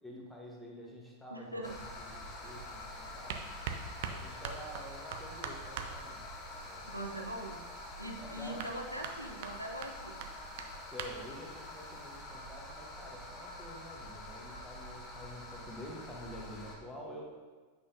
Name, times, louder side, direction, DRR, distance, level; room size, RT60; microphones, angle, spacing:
voice 1, 0.0-3.5 4.0-6.3 6.6-6.9 8.2-8.7 10.9-17.3, equal, 5° left, -3 dB, 1.3 m, -48 dB
voice 2, 1.3-1.8 6.9-7.6 8.0-10.2, right 1 dB, 90° right, 1 dB, 0.6 m, -41 dB
sound 1, 1.6-16.8, left 1 dB, 25° left, 1.1 m, -46 dB
sound 2, 2.4-12.2, right 6 dB, 50° right, 0.6 m, -46 dB
8.3 x 5.7 x 2.8 m, 1.4 s
figure-of-eight pair, 90°, 0 cm